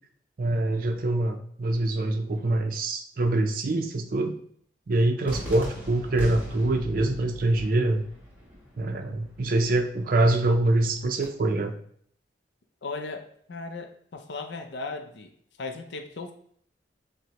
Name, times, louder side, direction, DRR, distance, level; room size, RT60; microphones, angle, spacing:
voice 1, 0.4-4.4 4.9-8.0 8.8-11.7, right 2 dB, 50° right, 5 dB, 0.4 m, -25 dB
Cheering / Fireworks, 5.3-11.3, equal, 10° right, 1.0 m, -40 dB
voice 2, 12.8-15.3 15.6-16.3, left 3 dB, 75° left, 5 dB, 0.5 m, -37 dB
6.2 x 2.1 x 2.9 m, 0.62 s
head